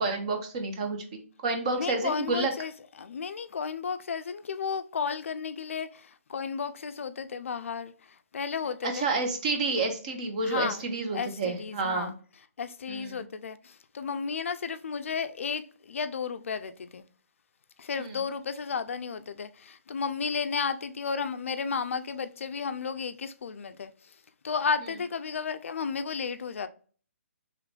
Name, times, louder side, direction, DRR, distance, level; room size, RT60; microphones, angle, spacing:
voice 1, 0.0-2.5 8.8-12.1 12.9-13.1 18.0-18.1, right 3 dB, 30° right, 0.7 m, -29 dB
voice 2, 1.8-2.7 3.0-9.1 10.4-10.9 11.1-12.1 12.6-17.1 17.8-24.2 24.4-26.7, left 5 dB, 65° left, 0.4 m, -33 dB
3.7 x 3.1 x 3.3 m
hypercardioid pair, 165°, 8 cm